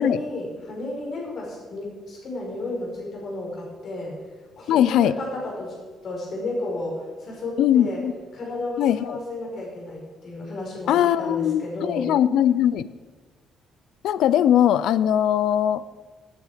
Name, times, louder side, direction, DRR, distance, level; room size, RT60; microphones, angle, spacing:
voice 1, 0.0-4.2 4.6-5.7 6.0-8.0 8.3-12.1, left 2 dB, 45° left, -2 dB, 5.1 m, -32 dB
voice 2, 4.7-5.1 7.6-8.1 8.8-9.2 10.9-12.9 14.0-15.8, left 10 dB, 70° left, 16 dB, 0.5 m, -20 dB
17.0 x 9.3 x 5.0 m, 1.4 s
cardioid pair, 165°, 0 cm